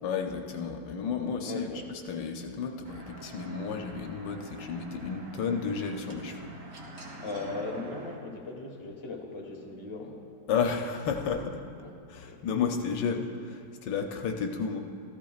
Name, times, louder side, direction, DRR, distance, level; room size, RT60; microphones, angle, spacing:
voice 1, 0.0-1.7 2.1-6.5 10.5-11.6 12.1-14.8, left 6 dB, 75° left, 4 dB, 1.3 m, -32 dB
voice 2, 1.2-1.8 7.2-10.2 11.8-11.9 12.2-12.5, left 3 dB, 20° left, 0 dB, 1.0 m, -38 dB
sound 1, 2.8-8.2, right 1 dB, 50° right, 1.6 m, -46 dB
14.5 x 13.5 x 2.4 m, 2.7 s
omnidirectional pair, 2.0 m